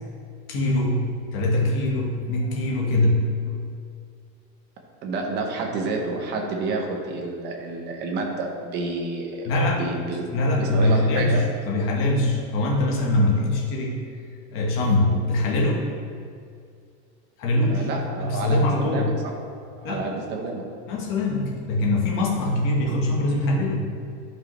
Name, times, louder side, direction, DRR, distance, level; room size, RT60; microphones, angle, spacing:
voice 1, 0.5-3.6 9.4-9.9 10.3-14.0 14.5-15.9 17.4-17.9 18.2-19.1 19.8-20.1 20.9-23.8, left 1 dB, 40° left, -2 dB, 1.4 m, -23 dB
voice 2, 5.0-9.5 9.8-10.3 10.6-11.4 17.6-19.3 19.8-20.6, right 3 dB, 30° right, 1 dB, 0.9 m, -29 dB
11.5 x 5.3 x 3.2 m, 2.3 s
cardioid pair, 175°, 33 cm